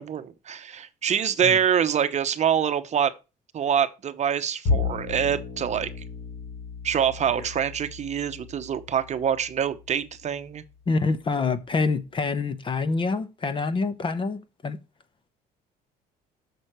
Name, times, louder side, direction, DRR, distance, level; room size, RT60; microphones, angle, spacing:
voice 1, 0.0-3.1 3.5-5.9 6.8-10.6, right 8 dB, 45° right, 0.8 m, -25 dB
Bowed string instrument, 4.6-11.1, left 4 dB, 80° left, 3.3 m, -34 dB
voice 2, 10.9-14.8, left 4 dB, 30° left, 0.8 m, -26 dB
6.8 x 6.3 x 4.4 m
cardioid pair, 110°, 17 cm